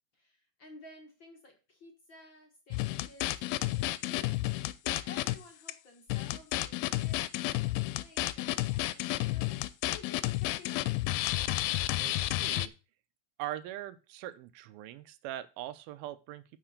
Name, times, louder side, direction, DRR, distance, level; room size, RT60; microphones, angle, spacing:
voice 1, 0.1-10.9, left 3 dB, 45° left, 2 dB, 1.6 m, -54 dB
sound 1, 2.7-5.4 5.7-5.8 6.1-12.7, left 17 dB, 85° left, 2.4 m, -31 dB
voice 2, 12.0-12.7 13.4-16.4, right 13 dB, 90° right, 14 dB, 2.6 m, -41 dB
9.1 x 5.9 x 6.5 m, 0.31 s
omnidirectional pair, 4.1 m